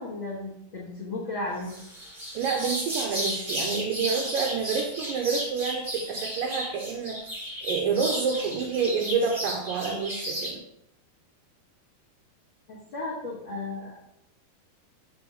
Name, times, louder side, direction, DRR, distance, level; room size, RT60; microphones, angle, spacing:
voice 1, 0.0-1.7 12.7-14.0, left 2 dB, 70° left, -6 dB, 1.1 m, -34 dB
sound 1, 1.6-10.5, equal, 60° right, 0.5 m, -33 dB
voice 2, 2.3-7.2 7.6-10.6, right 5 dB, 80° right, 2 dB, 2.1 m, -28 dB
8.0 x 3.5 x 6.3 m, 0.80 s
omnidirectional pair, 4.7 m